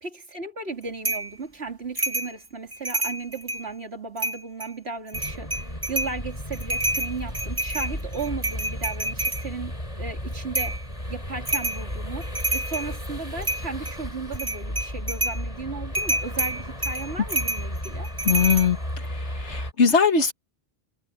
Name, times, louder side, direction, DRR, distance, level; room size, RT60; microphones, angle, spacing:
voice 1, 0.0-10.8 11.1-18.1, right 4 dB, 60° right, 3.8 m, -35 dB
sound 1, 1.0-1.3 2.0-2.3 2.7-3.7 4.2-4.7 5.1-6.2 6.5-9.4 10.5-10.8 11.5-11.8 12.2-12.9 13.4-14.0 14.3-15.4 15.9-18.7, right 2 dB, 20° right, 2.3 m, -28 dB
sound 2, 5.1-19.7, equal, 30° left, 8.1 m, -34 dB
voice 2, 18.2-20.3, left 6 dB, 70° left, 2.1 m, -21 dB
omnidirectional pair, 1.2 m